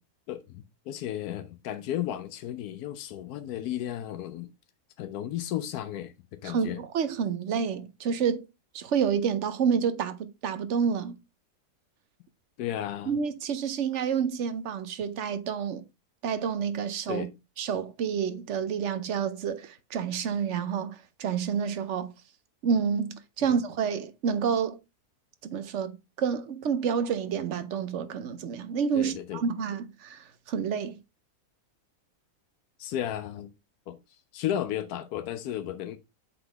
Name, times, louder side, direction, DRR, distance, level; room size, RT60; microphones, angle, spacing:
voice 1, 0.3-4.5 5.0-6.1 6.4-6.8 12.6-13.1 17.1-17.3 23.4-23.6 28.9-29.5 32.8-33.5 33.9-34.0 34.3-36.0, left 11 dB, 90° left, 1.1 m, -34 dB
voice 2, 6.4-8.5 8.7-11.1 13.1-15.8 16.2-17.3 17.6-22.1 22.6-24.8 25.4-31.0, right 7 dB, 60° right, 0.9 m, -29 dB
7.9 x 3.9 x 3.3 m
omnidirectional pair, 1.6 m